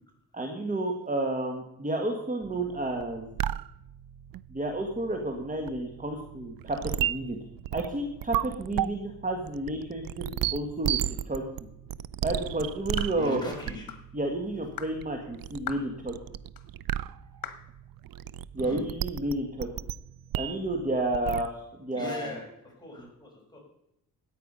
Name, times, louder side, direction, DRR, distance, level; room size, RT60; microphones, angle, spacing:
voice 1, 0.3-3.3 4.5-7.4 7.7-11.4 12.2-13.4 14.1-16.1 18.5-19.7 20.3-22.4, right 1 dB, 25° right, 2 dB, 1.7 m, -31 dB
sound 1, 2.4-21.5, right 11 dB, 75° right, 0.5 m, -35 dB
sound 2, 13.0-13.2 13.9-14.1 14.8-15.0 15.7-15.9 16.6-16.7 17.4-17.7, left 9 dB, 75° left, 1.5 m, -38 dB
voice 2, 13.2-13.9 18.6-18.8 21.9-23.6, left 2 dB, 10° left, -2 dB, 5.4 m, -39 dB
14.0 x 9.2 x 5.5 m, 0.82 s
cardioid pair, 110°, 35 cm